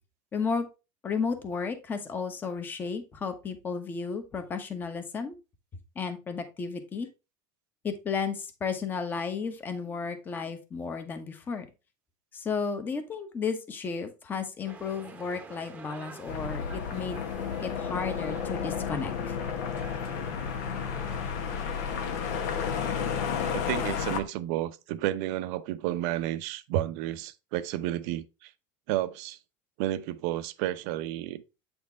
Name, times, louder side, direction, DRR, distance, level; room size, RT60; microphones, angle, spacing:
voice 1, 0.3-0.7 1.0-5.3 5.9-7.1 7.8-11.7 12.3-17.2 17.6-19.4, left 5 dB, 20° left, 1.1 m, -33 dB
sound 1, 14.6-23.5, right 4 dB, 15° right, 1.0 m, -47 dB
sound 2, 16.3-24.2, left 7 dB, 65° left, 1.3 m, -32 dB
voice 2, 23.5-28.5 28.9-29.4 29.8-31.4, right 13 dB, 60° right, 0.7 m, -31 dB
8.5 x 4.4 x 3.4 m
cardioid pair, 165°, 10 cm